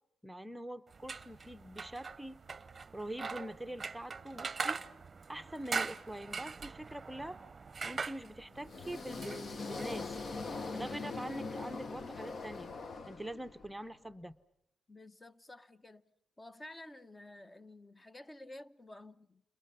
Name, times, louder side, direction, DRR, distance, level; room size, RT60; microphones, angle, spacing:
voice 1, 0.2-2.4 2.9-4.8 5.3-7.4 7.8-10.1 10.7-12.7 13.1-14.4, right 1 dB, 5° right, 0.9 m, -44 dB
sound 1, 0.9-11.0, right 5 dB, 30° right, 0.9 m, -42 dB
sound 2, 8.5-13.7, left 4 dB, 40° left, 1.1 m, -42 dB
voice 2, 14.9-16.0 16.4-19.4, left 1 dB, 20° left, 1.0 m, -52 dB
30.0 x 27.0 x 5.6 m
cardioid pair, 90°, 0 cm